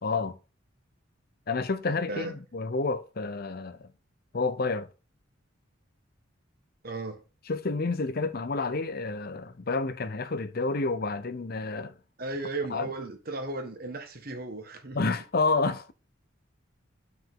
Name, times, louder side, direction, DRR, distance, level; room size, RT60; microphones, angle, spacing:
voice 1, 0.0-0.4 1.5-3.9 4.3-4.9 7.5-12.0 12.7-12.9 14.9-15.9, left 3 dB, 50° left, 0.7 m, -29 dB
voice 2, 6.8-7.2 12.2-15.0, right 2 dB, 45° right, 1.5 m, -35 dB
7.2 x 5.9 x 3.7 m
head